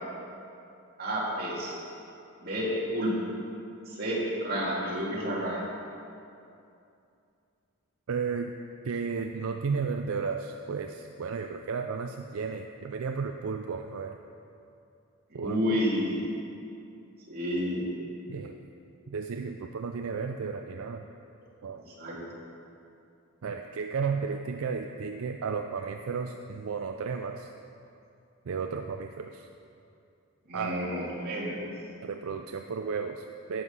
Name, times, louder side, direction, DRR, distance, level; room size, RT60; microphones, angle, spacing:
voice 1, 1.0-1.8 2.4-3.1 3.9-5.6 15.3-16.2 17.3-17.9 22.0-22.2 30.5-31.6, equal, 45° right, -5 dB, 2.3 m, -30 dB
voice 2, 8.1-8.5 8.8-14.2 15.3-15.8 18.3-18.6 19.1-21.1 21.6-21.8 23.4-27.5 28.5-29.5 30.5-30.8 32.0-33.6, right 5 dB, 70° right, 5 dB, 0.4 m, -33 dB
11.0 x 7.8 x 5.5 m, 2.6 s
head